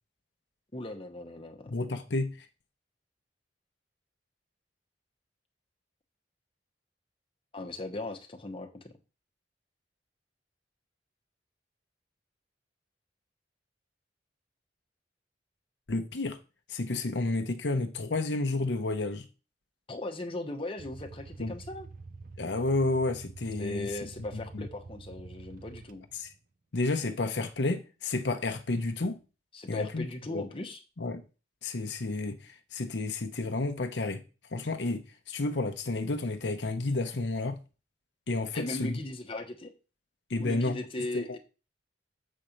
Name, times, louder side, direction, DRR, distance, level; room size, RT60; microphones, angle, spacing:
voice 1, 0.7-1.7 7.5-8.9 19.9-21.9 23.6-26.1 29.5-30.8 38.5-39.7 40.4-41.4, left 2 dB, 30° left, 1.0 m, -38 dB
voice 2, 1.7-2.5 15.9-16.4 16.7-19.3 21.4-21.5 22.4-23.9 24.3-24.7 26.2-26.3 26.7-29.2 29.7-30.0 30.3-30.4 31.0-31.2 31.6-34.2 34.5-37.6 38.3-39.0 40.3-40.8 41.1-41.2, left 2 dB, 75° left, 0.8 m, -31 dB
sound 1, 20.8-26.3, right 3 dB, 50° right, 0.6 m, -47 dB
7.5 x 4.3 x 5.2 m
head